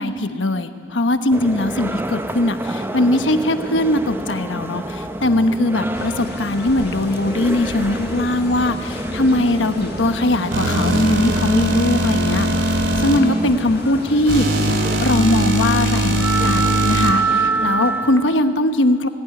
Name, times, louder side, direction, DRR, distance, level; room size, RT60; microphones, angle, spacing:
voice 1, 0.0-12.5 12.7-19.1, left 1 dB, 80° left, 8 dB, 1.1 m, -20 dB
sound 1, 1.3-18.5, right 3 dB, 10° right, 0.7 m, -27 dB
sound 2, 5.9-14.4, left 1 dB, 60° left, 1.8 m, -34 dB
sound 3, 10.5-13.2 14.3-17.1, right 1 dB, 90° right, 2.3 m, -20 dB
19.0 x 17.0 x 9.4 m, 2.2 s
head